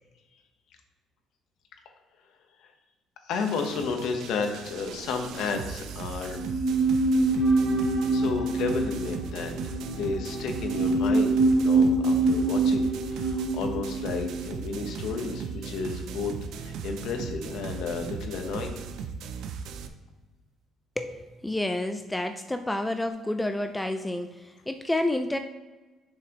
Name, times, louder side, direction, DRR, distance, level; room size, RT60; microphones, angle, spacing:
voice 1, 3.2-6.4 7.4-7.5 8.1-9.5 9.9-18.8, left 4 dB, 75° left, 4 dB, 1.1 m, -32 dB
sound 1, 3.3-19.9, right 6 dB, 75° right, 0.5 m, -38 dB
sound 2, 6.3-15.7 15.9-16.0, right 2 dB, 60° right, 1.9 m, -25 dB
voice 2, 21.0-25.4, left 1 dB, 10° left, 7 dB, 0.4 m, -29 dB
7.3 x 5.6 x 3.1 m, 1.2 s
cardioid pair, 105°, 0 cm